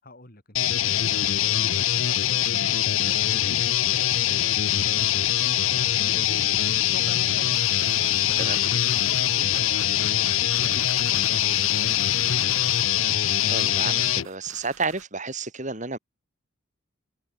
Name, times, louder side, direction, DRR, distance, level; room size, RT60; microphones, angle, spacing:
voice 1, 0.0-7.6 8.0-8.7 9.1-12.2, left 1 dB, 45° left, 5.2 m, -46 dB
sound 1, 0.6-14.3, left 11 dB, 75° left, 0.8 m, -23 dB
sound 2, 7.0-15.0, right 5 dB, 80° right, 4.0 m, -45 dB
voice 2, 13.2-16.0, right 4 dB, 35° right, 4.7 m, -31 dB
head